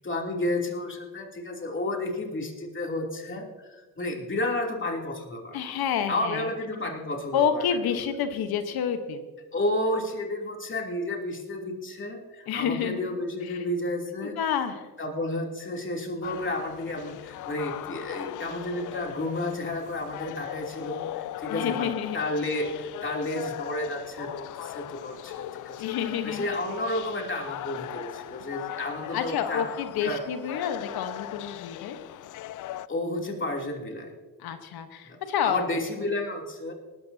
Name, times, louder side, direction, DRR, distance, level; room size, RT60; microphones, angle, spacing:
voice 1, 0.0-5.6 6.1-7.6 9.5-14.4 15.0-21.9 22.1-25.9 26.2-29.7 30.0-30.2 32.9-34.1 35.1-36.7, left 1 dB, 30° left, 1 dB, 3.0 m, -31 dB
voice 2, 5.5-6.5 7.3-9.3 12.5-13.1 13.4-13.6 14.2-14.9 21.5-22.2 25.8-26.5 28.7-28.8 29.1-32.0 34.4-35.8, left 7 dB, 75° left, 9 dB, 1.2 m, -29 dB
sound 1, 16.2-32.9, left 14 dB, 55° left, 0.5 m, -39 dB
18.5 x 13.0 x 2.8 m, 1.3 s
supercardioid pair, 60°, 38 cm